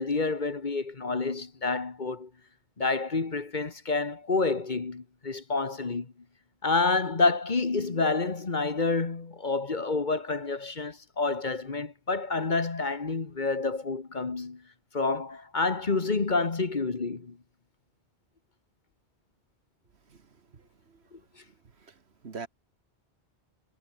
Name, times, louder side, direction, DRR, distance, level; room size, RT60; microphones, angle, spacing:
voice 1, 0.0-2.3 2.8-6.1 6.6-14.6 14.9-17.4 21.1-21.2, left 3 dB, 45° left, 1.5 m, -28 dB
voice 2, 20.1-21.0 21.4-22.5, right 5 dB, 65° right, 1.9 m, -46 dB
omnidirectional pair, 1.2 m